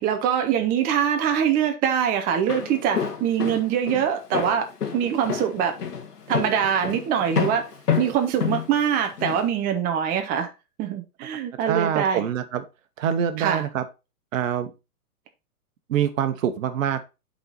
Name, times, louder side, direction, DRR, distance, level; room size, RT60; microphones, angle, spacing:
voice 1, 0.0-5.7 6.3-7.6 8.0-10.5 10.8-12.3 13.4-13.6, right 8 dB, 20° right, 0.6 m, -23 dB
Walk footsteps, 2.3-9.4, left 7 dB, 85° left, 1.9 m, -29 dB
voice 2, 11.6-12.6 13.0-13.8 14.3-14.7 15.9-17.0, right 9 dB, 60° right, 1.1 m, -25 dB
7.9 x 4.2 x 3.9 m
hypercardioid pair, 125°, 46 cm